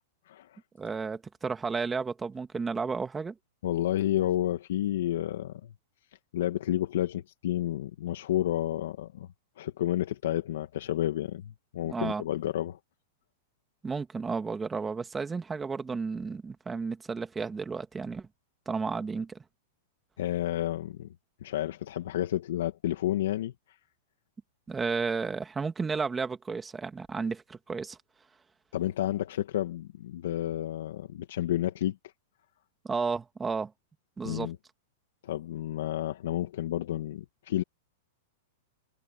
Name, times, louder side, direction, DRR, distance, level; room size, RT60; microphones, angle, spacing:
voice 1, 0.3-0.6 3.6-5.7 6.3-9.3 9.6-12.8 20.2-21.1 21.4-23.5 28.7-32.1 34.2-34.6 35.2-37.6, left 12 dB, 75° left, 1.9 m, -30 dB
voice 2, 0.8-3.3 11.9-12.2 13.8-18.3 18.7-19.4 24.7-28.0 32.8-33.7 34.2-34.5, right 4 dB, 10° right, 2.2 m, -32 dB
hypercardioid pair, 140°, 0 cm